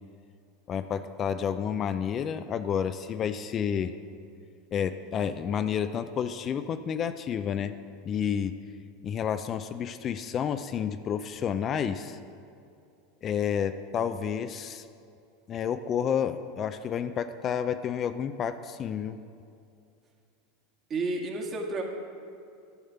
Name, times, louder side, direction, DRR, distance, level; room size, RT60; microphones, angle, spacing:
voice 1, 0.7-3.9 4.7-7.7 8.0-8.6 9.0-12.2 13.2-14.9 15.5-19.2, left 8 dB, 40° left, 10 dB, 0.4 m, -30 dB
voice 2, 20.9-21.8, right 3 dB, 35° right, 1 dB, 1.7 m, -31 dB
10.5 x 7.1 x 5.6 m, 2.5 s
hypercardioid pair, 100°, 0 cm